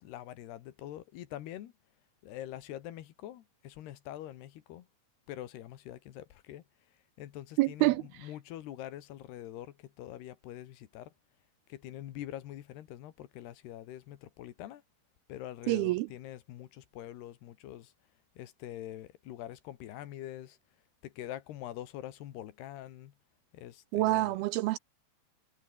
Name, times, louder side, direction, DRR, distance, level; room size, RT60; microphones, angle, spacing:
voice 1, 0.0-1.7 2.2-4.9 5.3-6.6 7.2-11.1 11.7-14.8 15.3-17.9 18.4-20.6 21.0-23.1 23.5-24.4, left 13 dB, 75° left, 3.5 m, -44 dB
voice 2, 7.6-8.3 15.7-16.1 23.9-24.8, right 19 dB, 80° right, 2.2 m, -27 dB
omnidirectional pair, 4.8 m